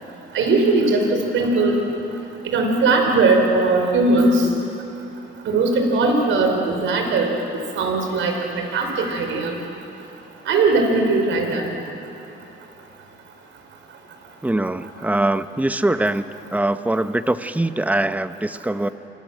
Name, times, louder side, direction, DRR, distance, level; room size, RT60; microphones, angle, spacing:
voice 1, 0.3-1.8 2.5-4.5 5.5-7.3 7.7-9.6 10.5-11.7, right 3 dB, 75° right, 3 dB, 5.4 m, -19 dB
voice 2, 14.4-16.2 16.5-18.9, right 1 dB, 5° right, 11 dB, 1.0 m, -22 dB
29.5 x 25.5 x 7.7 m, 2.9 s
cardioid pair, 90°, 20 cm